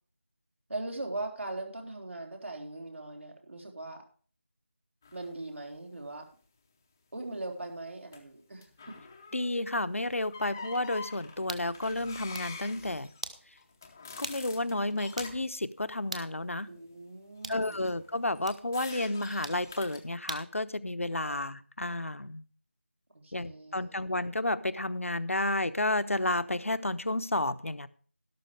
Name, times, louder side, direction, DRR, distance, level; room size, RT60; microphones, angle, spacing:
voice 1, 0.7-4.0 5.1-6.3 7.1-8.6 16.7-17.8 21.1-21.4 23.1-24.0, right 2 dB, 65° right, 2 dB, 3.7 m, -40 dB
sound 1, 5.0-5.3 8.1-8.3 8.6-9.5 10.1-15.5 17.6-20.1, left 4 dB, 10° left, 0.7 m, -46 dB
voice 2, 9.3-13.1 14.2-16.7 17.5-22.4 23.3-27.9, left 2 dB, 85° left, 12 dB, 1.0 m, -31 dB
sound 2, 11.5-11.7 12.2-12.6 13.2-13.4 14.2-14.4 14.7-14.8 15.2-15.4 16.1-16.3 17.4-17.6 18.4-18.6 19.4-19.6 20.3-20.5, right 3 dB, 30° right, 0.9 m, -40 dB
12.5 x 12.0 x 3.4 m, 0.41 s
figure-of-eight pair, 170°, 7 cm